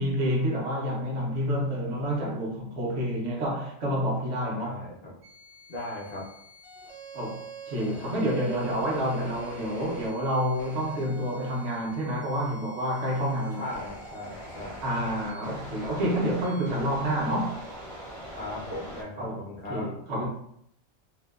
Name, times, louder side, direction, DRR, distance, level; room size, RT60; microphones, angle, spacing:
voice 1, 0.0-4.8 7.1-13.7 14.8-17.6 19.2-19.4 19.7-20.3, equal, 70° right, -3 dB, 1.0 m, -28 dB
voice 2, 4.6-5.1 5.7-6.3 13.6-14.8 18.3-19.9, left 1 dB, 55° left, -5 dB, 0.4 m, -38 dB
sound 1, 5.2-19.0, equal, 35° right, 0.5 m, -44 dB
2.6 x 2.1 x 2.3 m, 0.71 s
omnidirectional pair, 1.2 m